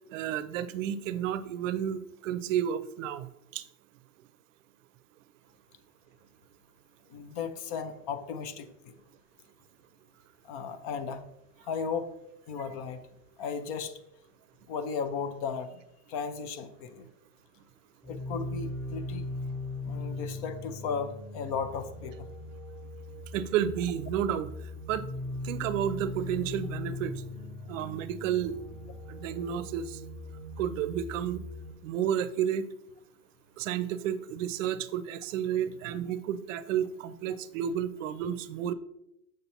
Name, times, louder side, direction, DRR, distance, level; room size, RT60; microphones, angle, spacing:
voice 1, 0.1-3.7 23.3-25.1 25.4-27.2 27.7-28.6 29.1-30.0 30.6-31.4 31.8-32.7 33.6-38.7, right 9 dB, 60° right, 14 dB, 0.6 m, -31 dB
voice 2, 7.1-8.9 10.4-11.2 11.6-12.1 12.5-13.0 13.4-13.9 14.7-15.8 16.1-17.1 18.1-19.2 19.8-22.3, left 6 dB, 30° left, 11 dB, 0.4 m, -35 dB
sound 1, 18.0-31.7, left 2 dB, ahead, 0.9 m, -39 dB
6.8 x 6.5 x 2.9 m, 0.82 s
hypercardioid pair, 135°, 45 cm